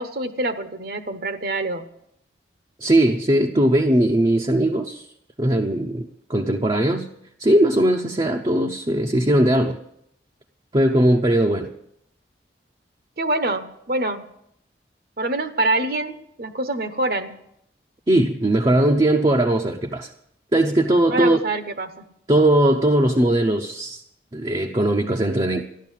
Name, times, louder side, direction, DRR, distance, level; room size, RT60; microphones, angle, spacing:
voice 1, 0.0-1.9 13.2-14.2 15.2-17.3 21.1-21.9, right 2 dB, 55° right, 9 dB, 1.0 m, -25 dB
voice 2, 2.8-5.1 5.4-7.1 7.4-9.8 10.7-11.7 18.1-20.1 20.5-21.4 22.3-24.0 24.3-25.6, right 1 dB, 25° right, 2 dB, 0.7 m, -19 dB
14.0 x 11.5 x 7.4 m, 0.75 s
head